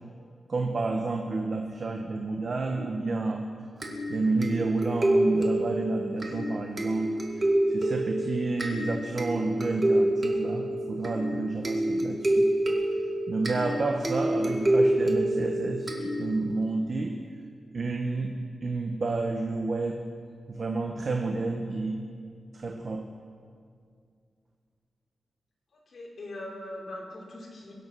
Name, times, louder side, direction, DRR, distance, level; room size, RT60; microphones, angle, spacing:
voice 1, 0.5-3.5 4.1-7.2 7.7-12.5 13.3-17.2 17.7-20.1 20.5-22.1 22.5-23.1, right 3 dB, 45° right, 3 dB, 1.0 m, -30 dB
sound 1, 3.8-16.6, right 1 dB, 30° right, 2.0 m, -27 dB
voice 2, 25.9-27.7, left 1 dB, 50° left, -3 dB, 3.5 m, -41 dB
23.5 x 8.2 x 6.1 m, 2.2 s
wide cardioid pair, 140°, 0 cm